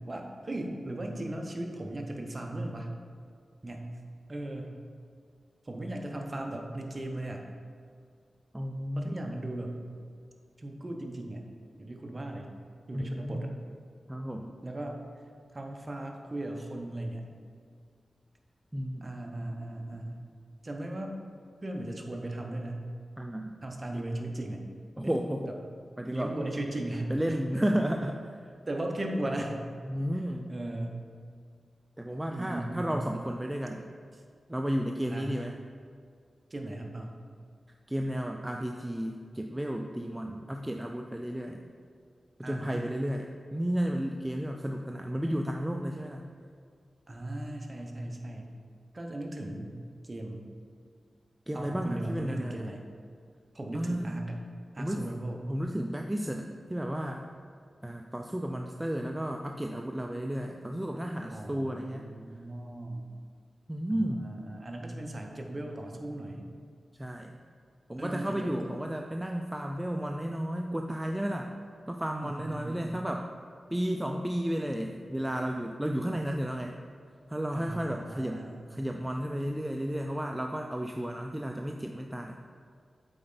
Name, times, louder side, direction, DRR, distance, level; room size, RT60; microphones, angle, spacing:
voice 1, 0.1-2.9 3.6-3.9 4.3-4.8 5.6-7.6 9.0-9.8 10.6-11.5 11.8-12.5 12.9-13.5 14.6-15.0 15.5-17.3 19.0-20.2 20.6-21.1 21.6-22.9 23.6-24.7 25.0-25.2 26.1-27.4 28.7-29.6 30.5-31.1 32.3-33.0 35.1-35.4 36.5-37.2 42.4-42.8 47.1-48.5 48.9-49.7 50.0-50.5 51.5-52.8 53.5-54.4 54.7-55.4 61.3-63.1 63.9-66.5 68.0-68.8 72.2-72.8 77.5-78.6, right 1 dB, 35° right, 2 dB, 0.9 m, -37 dB
voice 2, 8.5-9.2 12.9-13.5 14.1-14.5 18.7-19.1 23.2-23.5 25.0-25.5 26.0-26.3 27.1-28.3 29.9-30.5 32.0-33.9 34.5-35.6 37.9-41.6 42.4-46.3 51.5-52.7 53.7-54.2 54.8-55.0 55.5-57.3 57.8-62.1 63.7-64.3 66.9-67.4 67.9-71.5 71.9-73.3 73.7-76.8 77.3-78.4 78.7-82.3, equal, 10° right, 3 dB, 0.4 m, -33 dB
7.8 x 4.3 x 3.9 m, 2.2 s
wide cardioid pair, 75°, 0 cm